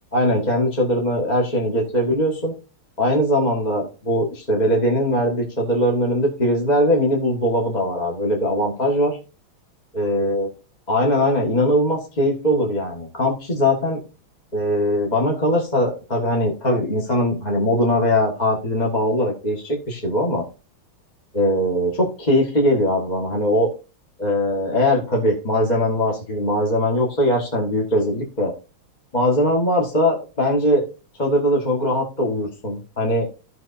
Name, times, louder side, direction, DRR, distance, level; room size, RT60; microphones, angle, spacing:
voice 1, 0.1-2.5 3.0-9.2 9.9-10.5 10.9-14.0 14.5-20.4 21.3-23.7 24.2-28.5 29.1-30.8 31.2-33.3, left 1 dB, 25° left, -1 dB, 1.3 m, -20 dB
15.0 x 6.0 x 2.6 m, 0.32 s
omnidirectional pair, 2.3 m